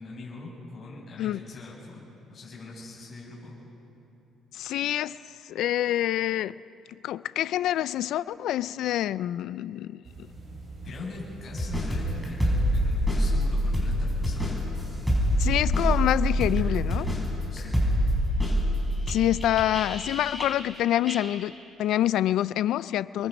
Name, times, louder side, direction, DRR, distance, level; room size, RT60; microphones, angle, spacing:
voice 1, 0.0-3.5 10.8-14.6 17.5-17.8, left 3 dB, 40° left, -5 dB, 7.3 m, -42 dB
voice 2, 4.5-5.2 5.5-6.5 6.9-10.0 15.4-17.1 19.1-21.5 21.8-23.3, left 12 dB, 70° left, 17 dB, 0.4 m, -26 dB
sound 1, 10.0-17.3, right 3 dB, 35° right, 6.4 m, -42 dB
sound 2, 11.6-20.8 21.1-21.2, equal, 5° left, 5.9 m, -26 dB
28.0 x 22.5 x 5.3 m, 2.9 s
cardioid pair, 135°, 0 cm